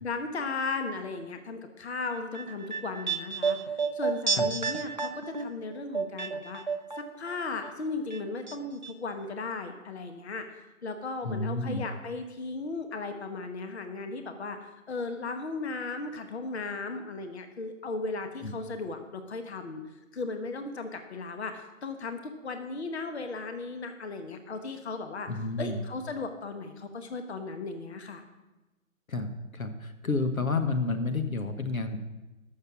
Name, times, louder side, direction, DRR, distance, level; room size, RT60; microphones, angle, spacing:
voice 1, 0.0-3.6 3.9-6.6 7.0-10.5 10.8-19.8 20.1-25.3 25.6-28.2, left 3 dB, 50° left, 7 dB, 1.2 m, -36 dB
sound 1, 2.1-7.3 7.6-8.6 8.8-8.9, right 5 dB, 35° right, 0.4 m, -31 dB
voice 2, 11.2-11.9 18.4-18.5 25.3-25.8 29.1-32.0, left 3 dB, 80° left, 8 dB, 1.4 m, -30 dB
13.5 x 6.7 x 5.9 m, 1.1 s
figure-of-eight pair, 145°, 41 cm